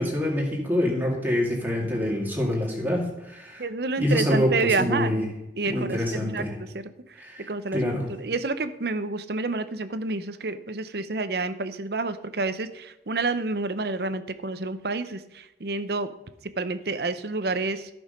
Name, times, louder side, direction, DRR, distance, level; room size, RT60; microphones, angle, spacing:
voice 1, 0.0-3.6 4.0-5.3 5.7-6.5 7.2-8.1, left 1 dB, 10° right, -1 dB, 2.3 m, -26 dB
voice 2, 3.6-5.2 5.6-6.4 6.7-6.9 7.5-7.8 8.1-16.1 16.6-17.9, right 3 dB, 60° right, 12 dB, 0.7 m, -29 dB
14.0 x 6.3 x 5.2 m, 0.91 s
head